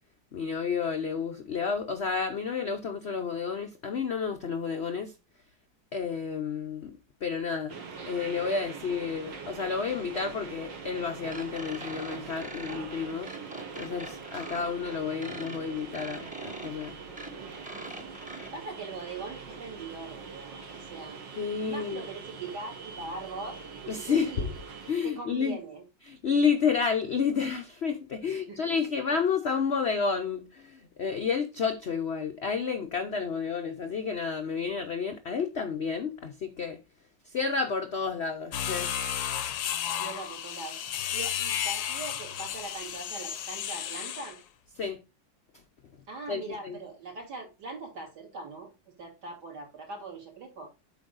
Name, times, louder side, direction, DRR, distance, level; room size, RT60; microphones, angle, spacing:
voice 1, 0.3-5.1 5.9-6.9 7.2-7.8 8.1-13.3 13.8-17.0 21.4-22.0 23.9-24.5 24.9-25.6 26.1-36.8 37.3-38.9 44.8-45.0 46.3-46.8, left 5 dB, 60° left, 0.7 m, -30 dB
sound 1, 7.7-24.9, right 5 dB, 75° right, 2.2 m, -43 dB
sound 2, 11.3-18.5, right 1 dB, 5° right, 0.9 m, -43 dB
voice 2, 17.4-17.8 18.2-21.2 21.6-24.5 25.0-25.8 28.2-28.8 39.8-44.4 46.1-48.7 49.0-50.7, right 3 dB, 60° right, 3.3 m, -41 dB
sound 3, 38.5-44.4, left 10 dB, 85° left, 1.5 m, -33 dB
8.3 x 5.3 x 3.8 m
omnidirectional pair, 2.0 m